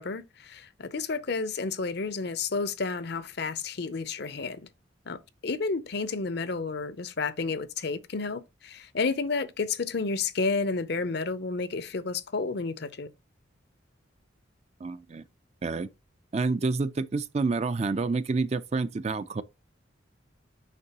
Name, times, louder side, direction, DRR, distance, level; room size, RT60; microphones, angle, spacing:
voice 1, 0.0-4.7 5.1-13.1, left 4 dB, 55° left, 0.6 m, -31 dB
voice 2, 14.8-15.2 15.6-15.9 16.3-19.4, right 3 dB, 35° right, 0.4 m, -28 dB
6.6 x 5.3 x 2.9 m
head